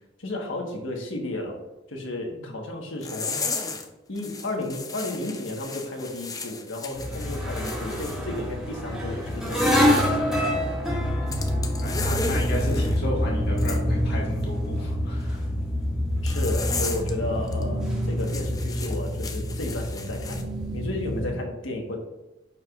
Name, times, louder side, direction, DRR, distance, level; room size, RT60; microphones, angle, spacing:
voice 1, 0.2-1.6 1.9-3.5 4.1-10.5 16.2-22.0, left 1 dB, 75° left, 2 dB, 1.3 m, -33 dB
sound 1, 3.0-3.9 4.2-8.2 9.3-10.1 11.3-13.0 13.6-13.8 16.3-17.1 17.5-17.6 18.2-20.4, left 4 dB, 20° left, 0.5 m, -34 dB
sound 2, 6.9-21.3, equal, 5° right, 1.8 m, -26 dB
voice 2, 11.2-15.5, equal, 55° left, -2 dB, 1.5 m, -33 dB
10.5 x 4.7 x 2.4 m, 1.0 s
head